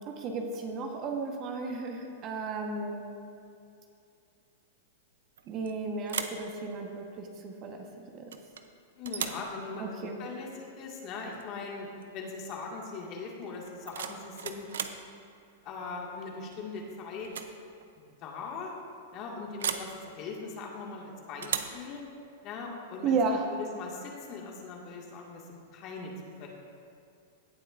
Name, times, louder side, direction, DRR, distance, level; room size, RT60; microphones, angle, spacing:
voice 1, 0.1-3.0 5.5-8.4 9.8-10.2 23.0-23.5, right 4 dB, 40° right, 3 dB, 1.1 m, -33 dB
sound 1, 5.4-5.7 6.0-6.5 8.3-8.7 9.0-9.5 11.3-11.5 11.8-12.2 13.6-15.0 16.5-16.8 17.2-17.6 17.8-17.9 19.6-19.9 21.4-21.8, right 7 dB, 80° right, 0.6 m, -36 dB
voice 2, 9.0-14.8 15.6-17.3 18.2-18.7 19.1-22.0 22.4-23.2 23.5-26.1 26.4-26.5, left 4 dB, 40° left, -1 dB, 1.9 m, -40 dB
17.0 x 7.6 x 2.5 m, 2.5 s
hypercardioid pair, 120°, 0 cm